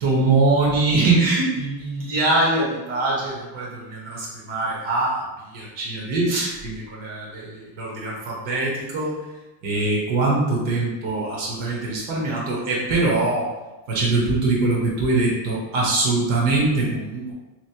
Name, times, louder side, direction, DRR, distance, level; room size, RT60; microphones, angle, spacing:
voice 1, 0.0-9.3 9.6-13.5 13.9-17.3, right 2 dB, 85° right, -4 dB, 1.1 m, -23 dB
3.2 x 3.1 x 2.8 m, 1.1 s
cardioid pair, 125°, 45 cm